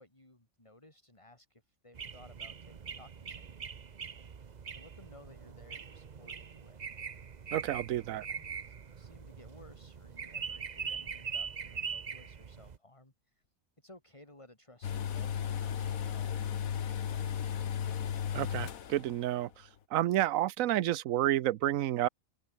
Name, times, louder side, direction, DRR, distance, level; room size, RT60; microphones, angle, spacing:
voice 1, 0.0-3.6 4.4-6.9 7.7-7.9 8.3-13.4 13.8-17.4, left 1 dB, 20° left, 4.2 m, -58 dB
sound 1, 1.9-12.8, right 6 dB, 40° right, 0.8 m, -42 dB
voice 2, 7.5-8.3 18.3-19.5 19.9-22.1, right 13 dB, 75° right, 1.0 m, -30 dB
sound 2, 14.8-19.3 19.5-19.6, left 8 dB, 85° left, 1.6 m, -35 dB
omnidirectional pair, 1.4 m